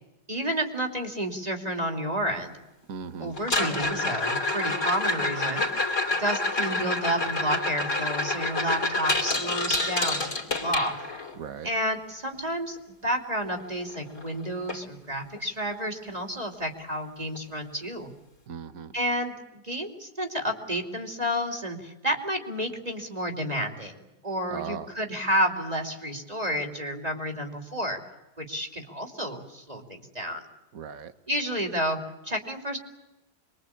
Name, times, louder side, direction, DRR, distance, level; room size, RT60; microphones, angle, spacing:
voice 1, 0.3-2.6 3.2-5.6 6.1-11.0 11.6-12.8 13.0-18.1 18.9-28.0 28.4-30.4 31.3-32.0 32.2-32.8, equal, 25° right, 4 dB, 3.0 m, -30 dB
voice 2, 2.9-3.4 11.4-11.7 18.5-19.0 24.5-24.9 30.7-31.1, right 7 dB, 60° right, 11 dB, 1.8 m, -37 dB
sound 1, 3.4-11.3 13.6-13.7 13.9-14.3 14.7-14.8 15.4-15.5 17.3-17.4, left 2 dB, 50° left, 3.7 m, -28 dB
26.0 x 22.5 x 8.7 m, 0.97 s
omnidirectional pair, 1.7 m